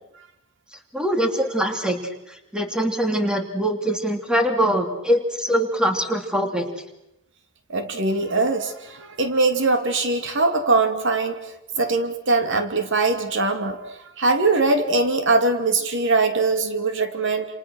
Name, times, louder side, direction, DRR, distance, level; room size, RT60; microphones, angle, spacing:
voice 1, 0.9-2.0 2.5-6.7, equal, 5° right, 4 dB, 3.1 m, -23 dB
voice 2, 7.7-11.4 11.8-17.5, right 3 dB, 65° right, 6 dB, 2.8 m, -22 dB
29.5 x 28.5 x 6.4 m, 0.88 s
head